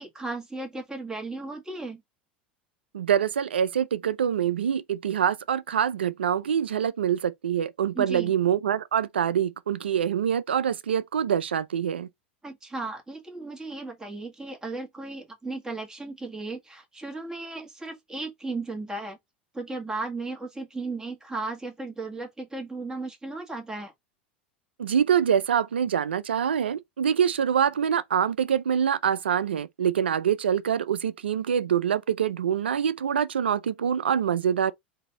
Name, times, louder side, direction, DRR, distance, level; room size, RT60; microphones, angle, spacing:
voice 1, 0.0-2.0 8.0-8.3 12.4-19.2 19.5-23.9, right 3 dB, 10° right, 1.8 m, -35 dB
voice 2, 2.9-12.1 24.8-34.7, right 8 dB, 90° right, 0.5 m, -25 dB
4.0 x 2.8 x 4.3 m
hypercardioid pair, 90°, 6 cm